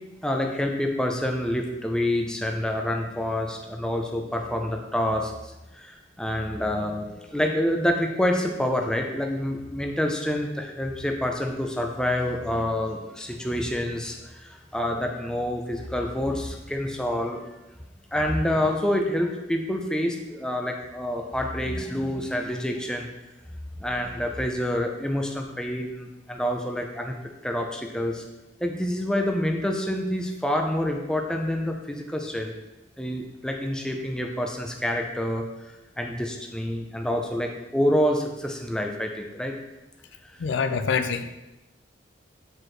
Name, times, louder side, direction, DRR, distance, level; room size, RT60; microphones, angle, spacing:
voice 1, 0.2-17.4 18.1-23.1 23.8-27.1 27.4-28.2 28.6-32.5 33.0-35.4 36.0-39.5 40.2-40.4, left 1 dB, 5° left, 2 dB, 0.5 m, -27 dB
voice 2, 40.4-41.3, left 5 dB, 85° left, 9 dB, 0.4 m, -25 dB
6.4 x 4.6 x 3.2 m, 1.0 s
head